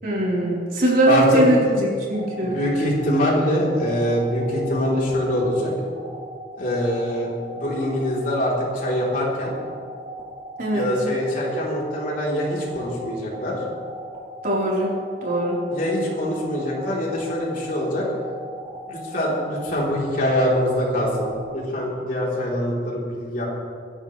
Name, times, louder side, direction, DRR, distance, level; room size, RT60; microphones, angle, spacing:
voice 1, 0.0-2.6 10.6-10.9 14.4-14.9 15.2-15.6, right 1 dB, 55° right, -5 dB, 4.4 m, -20 dB
voice 2, 1.1-1.4 2.4-5.7 6.6-7.3 7.6-9.6 10.7-13.6 15.7-18.1 18.9-23.4, equal, 55° left, -4 dB, 4.0 m, -24 dB
sound 1, 2.1-21.4, right 1 dB, 40° right, 3.5 m, -39 dB
24.5 x 11.5 x 3.4 m, 2.2 s
head